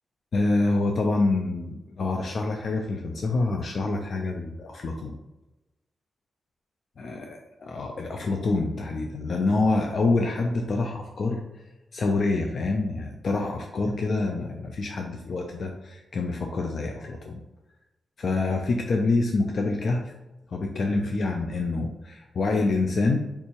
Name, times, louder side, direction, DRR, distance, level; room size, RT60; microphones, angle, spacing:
voice 1, 0.3-5.2 7.0-7.4 7.7-11.4 11.9-17.4 18.2-20.1 20.5-23.2, left 3 dB, 65° left, 2 dB, 0.4 m, -26 dB
3.4 x 2.7 x 2.9 m, 0.98 s
cardioid pair, 65°, 0 cm